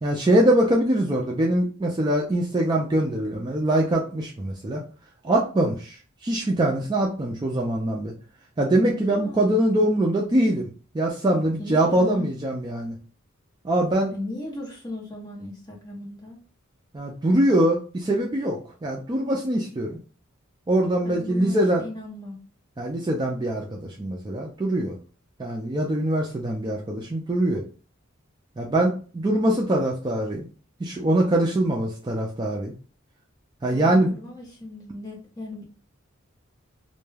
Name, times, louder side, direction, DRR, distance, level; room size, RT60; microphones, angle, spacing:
voice 1, 0.0-4.8 5.2-6.0 6.2-8.1 8.6-10.7 10.9-13.0 13.6-14.1 16.9-19.9 20.7-21.8 22.8-24.9 25.4-27.6 28.6-30.4 30.8-32.7 33.6-34.1, right 1 dB, 20° right, -1 dB, 0.3 m, -23 dB
voice 2, 9.1-9.5 11.6-12.3 14.1-16.4 21.0-22.4 33.7-35.6, left 1 dB, 20° left, -2 dB, 0.8 m, -37 dB
2.2 x 2.2 x 3.1 m, 0.38 s
head